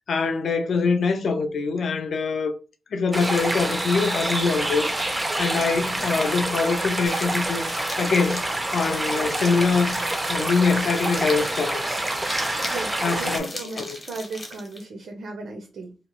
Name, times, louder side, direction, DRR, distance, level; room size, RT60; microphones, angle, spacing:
voice 1, 0.1-2.5 2.9-5.1 5.4-7.7 8.0-8.4 8.7-10.0 10.3-12.0 13.0-13.5 13.8-14.0, left 4 dB, 60° left, 0.5 m, -24 dB
sound 1, 3.1-13.4, right 1 dB, 10° right, 0.4 m, -27 dB
sound 2, 7.1-14.8, left 1 dB, 20° left, 0.8 m, -38 dB
voice 2, 12.6-16.0, right 3 dB, 85° right, 0.5 m, -36 dB
2.7 x 2.1 x 2.9 m
wide cardioid pair, 175°, 0 cm